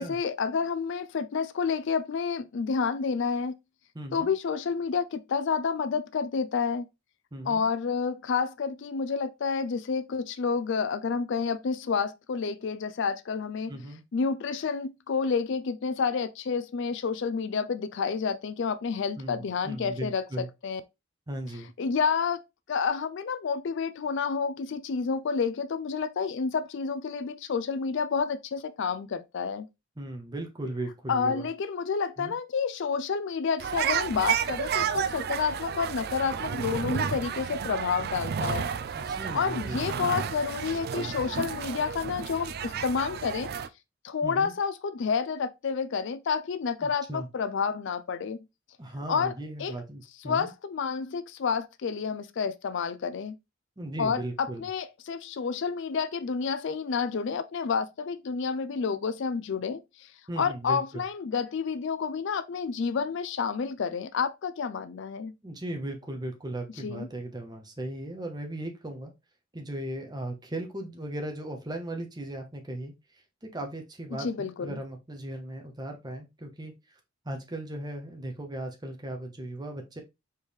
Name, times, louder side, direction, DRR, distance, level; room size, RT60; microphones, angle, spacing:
voice 1, 0.0-3.5 4.1-6.9 7.5-13.8 14.1-20.8 21.8-22.4 22.7-29.7 31.1-38.7 39.3-43.5 44.0-48.4 49.1-49.3 49.6-49.7 50.2-53.3 54.0-60.1 60.4-65.3 66.8-67.1 74.2-74.8, left 5 dB, 60° left, 0.4 m, -29 dB
voice 2, 3.9-4.3 7.3-7.6 13.7-14.0 19.2-20.5 21.3-21.7 30.0-31.5 32.2-32.3 38.9-39.8 44.2-44.5 46.8-47.3 48.8-50.5 53.8-54.7 60.3-61.0 65.4-69.1 69.5-77.0 77.2-80.0, right 1 dB, 20° right, 0.8 m, -37 dB
sound 1, 33.6-43.7, right 7 dB, 45° right, 0.3 m, -31 dB
4.4 x 3.1 x 3.4 m
head